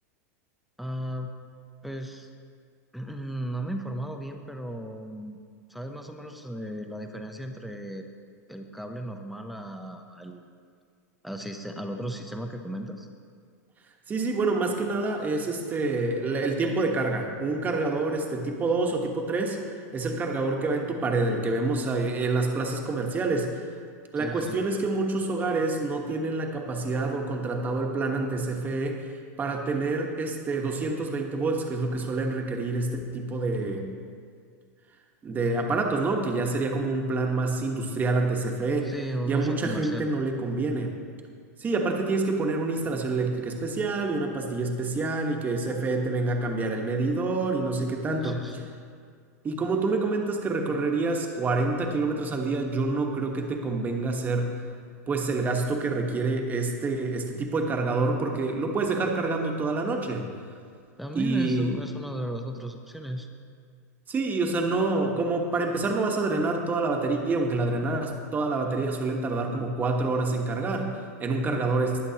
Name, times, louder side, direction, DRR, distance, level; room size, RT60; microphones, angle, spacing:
voice 1, 0.8-1.3 1.8-2.3 2.9-5.4 5.7-8.1 8.5-10.5 11.2-13.1 24.2-24.6 38.8-40.1 48.2-48.7 61.0-63.3, right 1 dB, ahead, 4 dB, 0.7 m, -35 dB
voice 2, 14.1-19.6 19.9-23.7 24.1-29.1 29.4-33.9 35.2-38.9 39.3-40.9 41.6-48.5 49.4-54.6 55.1-60.3 61.1-61.7 64.1-72.1, right 3 dB, 20° right, 2 dB, 1.2 m, -27 dB
20.5 x 7.6 x 2.9 m, 2.1 s
supercardioid pair, 140°, 9 cm